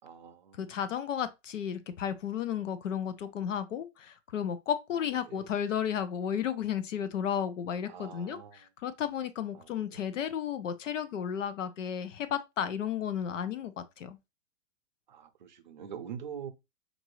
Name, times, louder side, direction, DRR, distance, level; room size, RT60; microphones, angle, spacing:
voice 1, 0.0-0.7 5.3-5.4 7.8-8.7 9.5-10.0 15.1-16.5, right 8 dB, 35° right, 0.6 m, -44 dB
voice 2, 0.6-14.2, left 8 dB, 75° left, 0.7 m, -33 dB
5.8 x 2.7 x 3.0 m
hypercardioid pair, 180°, 38 cm